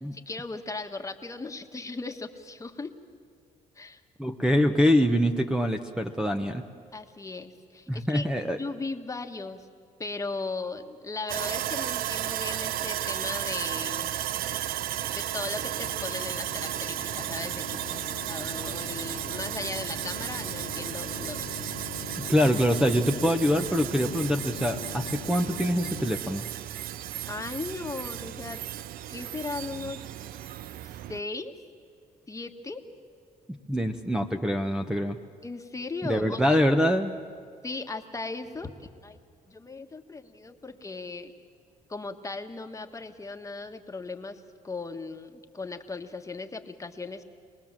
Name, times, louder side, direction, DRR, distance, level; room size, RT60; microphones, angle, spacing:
voice 1, 0.1-2.9 3.7-4.0 6.9-8.3 8.6-9.7 10.0-14.1 15.1-21.7 27.3-28.6 29.1-30.0 31.1-31.5 32.3-32.8 35.4-36.4 37.6-39.2 39.5-41.3 41.9-47.2, left 3 dB, 20° left, 5 dB, 1.5 m, -37 dB
voice 2, 4.2-6.6 7.9-8.6 22.2-26.4 33.5-35.2 36.1-37.1, equal, 5° right, 5 dB, 1.0 m, -24 dB
Sawing, 11.3-31.2, right 12 dB, 75° right, 0.5 m, -34 dB
sound 1, 15.2-26.4, left 12 dB, 80° left, 0.9 m, -42 dB
26.0 x 19.5 x 7.5 m, 2.2 s
cardioid pair, 90°, 15 cm